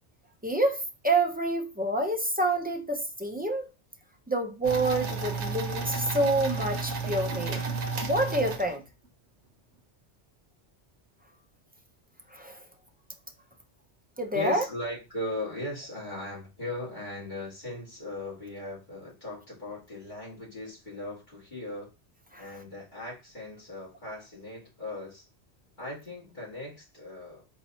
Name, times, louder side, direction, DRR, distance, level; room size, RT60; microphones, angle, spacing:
voice 1, 0.4-3.7 4.3-7.7 8.0-8.8 12.3-12.6 14.2-14.6 22.3-22.5, right 2 dB, 15° right, 0.3 m, -28 dB
sound 1, 4.6-9.1, right 4 dB, 80° right, 1.1 m, -32 dB
voice 2, 14.3-21.9 22.4-25.3 25.8-27.5, left 2 dB, 45° left, 2.4 m, -38 dB
4.5 x 2.8 x 4.2 m
omnidirectional pair, 1.2 m